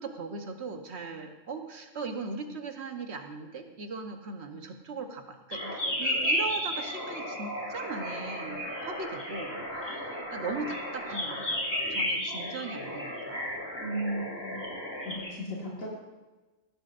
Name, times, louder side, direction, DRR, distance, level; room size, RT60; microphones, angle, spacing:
voice 1, 0.0-13.6, right 4 dB, 55° right, 5 dB, 1.3 m, -39 dB
sound 1, 5.5-15.3, equal, 20° left, 2.4 m, -33 dB
voice 2, 13.8-14.6 15.1-15.9, right 1 dB, 90° left, -4 dB, 2.1 m, -35 dB
15.5 x 11.5 x 2.5 m, 1.2 s
omnidirectional pair, 1.3 m